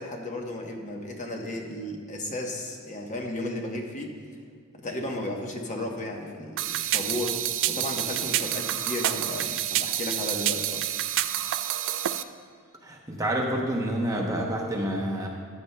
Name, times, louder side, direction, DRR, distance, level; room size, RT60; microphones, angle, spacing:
voice 1, 0.0-4.1 4.8-10.8, left 1 dB, 35° left, 1 dB, 0.9 m, -34 dB
sound 1, 6.6-12.2, right 12 dB, 60° right, 0.3 m, -28 dB
voice 2, 12.8-15.3, right 1 dB, 15° right, 0 dB, 0.8 m, -28 dB
14.5 x 9.3 x 2.2 m, 2.1 s
head